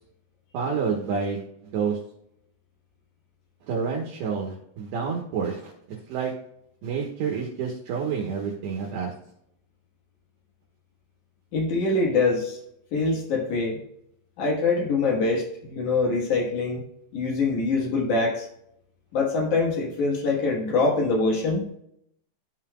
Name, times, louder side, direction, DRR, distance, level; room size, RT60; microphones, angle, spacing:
voice 1, 0.5-1.4 1.7-2.0 3.7-6.3 6.8-9.1, right 6 dB, 70° right, -2 dB, 2.8 m, -29 dB
voice 2, 11.5-12.6 12.9-13.8 14.4-16.8 17.1-18.4 19.1-21.6, left 3 dB, 85° left, -2 dB, 1.7 m, -24 dB
14.5 x 5.7 x 2.3 m, 0.74 s
omnidirectional pair, 5.9 m